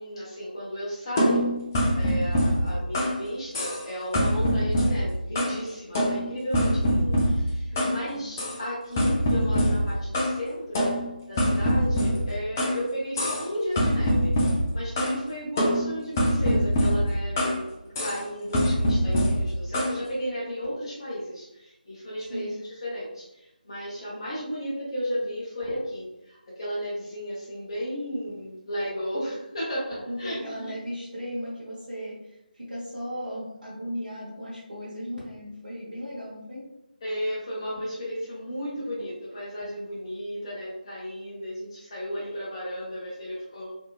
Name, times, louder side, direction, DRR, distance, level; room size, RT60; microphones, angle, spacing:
voice 1, 0.0-1.6 2.0-10.9 11.3-30.4 37.0-43.7, equal, 35° left, -7 dB, 0.7 m, -34 dB
sound 1, 1.2-3.2 3.5-3.9 4.1-5.6 5.9-8.0 8.4-8.6 9.0-10.4 10.7-12.8 13.2-13.5 13.8-15.2 15.6-17.6 17.9-18.2 18.5-20.0, equal, 15° left, 0.4 m, -24 dB
voice 2, 7.7-8.3 22.2-22.5 30.1-36.7, equal, 50° right, -8 dB, 1.0 m, -36 dB
2.8 x 2.6 x 2.3 m, 0.91 s
figure-of-eight pair, 160°, 5 cm